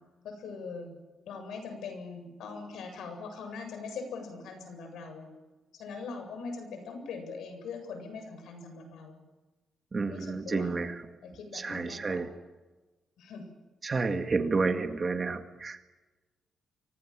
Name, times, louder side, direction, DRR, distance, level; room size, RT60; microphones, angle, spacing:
voice 1, 0.2-0.9 1.3-5.3 5.7-9.2 10.0-10.8 11.2-12.2 13.2-13.5, left 4 dB, 85° left, 6 dB, 7.9 m, -41 dB
voice 2, 9.9-10.9 11.5-12.3 13.8-15.9, right 4 dB, 25° right, 6 dB, 2.0 m, -30 dB
30.0 x 24.0 x 7.5 m, 1.2 s
wide cardioid pair, 175°, 0 cm